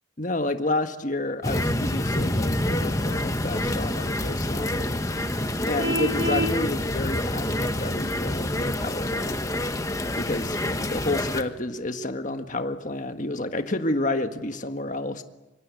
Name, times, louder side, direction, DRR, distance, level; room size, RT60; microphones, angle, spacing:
voice 1, 0.2-4.9 5.6-9.4 10.1-15.2, left 2 dB, 40° left, 7 dB, 1.6 m, -30 dB
sound 1, 1.4-11.4, left 1 dB, 15° left, 1.3 m, -27 dB
Vehicle horn car horn honking, 5.8-6.6, equal, 80° right, 4.1 m, -26 dB
25.5 x 23.5 x 8.4 m, 1.1 s
head